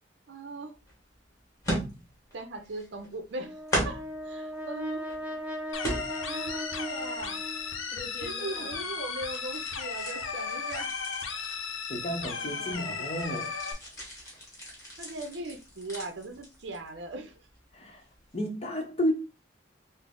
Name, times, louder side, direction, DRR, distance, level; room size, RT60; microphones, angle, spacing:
voice 1, 0.3-0.8 2.3-5.1 6.3-7.4 8.2-10.9 12.3-13.0 15.0-17.4, right 2 dB, 65° right, 0.6 m, -39 dB
sound 1, 0.9-1.0 1.6-2.3 2.6-3.3 3.7-4.2 4.8-5.4 5.8-6.5 6.9-8.9 9.2-12.5 12.8-17.0 17.3-17.6 18.0-18.1, equal, 15° left, 1.3 m, -37 dB
Brass instrument, 3.4-7.8, equal, 10° right, 0.7 m, -38 dB
sound 2, 5.7-13.7, left 5 dB, 85° left, 0.6 m, -35 dB
voice 2, 11.9-13.5 17.7-18.0 18.3-19.1, equal, 30° left, 0.8 m, -32 dB
3.9 x 2.0 x 3.6 m
head